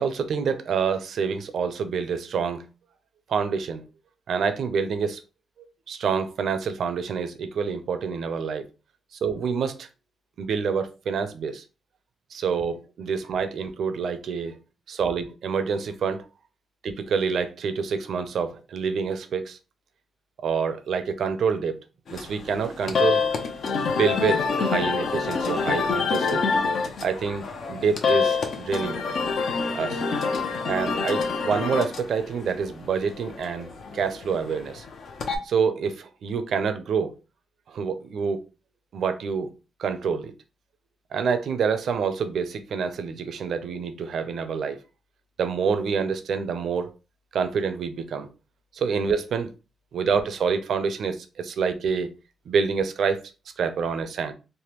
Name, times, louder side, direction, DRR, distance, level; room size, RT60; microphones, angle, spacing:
voice 1, 0.0-2.7 3.3-3.8 4.3-5.2 5.9-8.6 9.2-9.9 10.4-11.6 12.3-12.7 13.0-14.6 14.9-16.2 16.8-19.6 20.4-21.8 22.1-23.2 23.9-26.5 27.0-29.0 29.7-30.0 30.6-34.8 35.4-37.1 37.7-38.4 38.9-39.5 39.8-40.3 41.1-44.8 45.4-46.9 47.3-48.3 48.7-49.5 49.9-52.1 52.5-53.2 53.6-54.3, right 6 dB, 70° right, 0.5 m, -27 dB
sound 1, 22.1-35.4, left 5 dB, 65° left, 0.6 m, -27 dB
3.4 x 2.1 x 2.9 m
cardioid pair, 85°, 0 cm